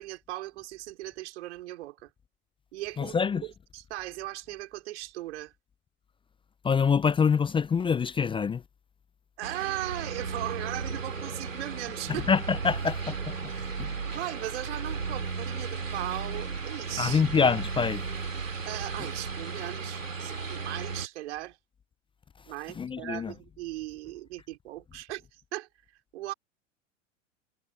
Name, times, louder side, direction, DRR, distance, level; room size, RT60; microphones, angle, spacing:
voice 1, 0.0-2.1 2.7-5.5 9.4-12.3 13.6-13.7 14.1-17.2 18.6-21.6 22.5-25.2 25.5-25.7 26.1-26.3, right 16 dB, 60° right, 5.1 m, -38 dB
voice 2, 3.0-3.4 6.6-8.6 12.1-13.0 13.8-13.9 17.0-18.0 22.7-23.3, left 6 dB, 15° left, 0.6 m, -25 dB
sound 1, 9.4-21.1, right 4 dB, 90° right, 2.7 m, -35 dB
hypercardioid pair, 95°, 38 cm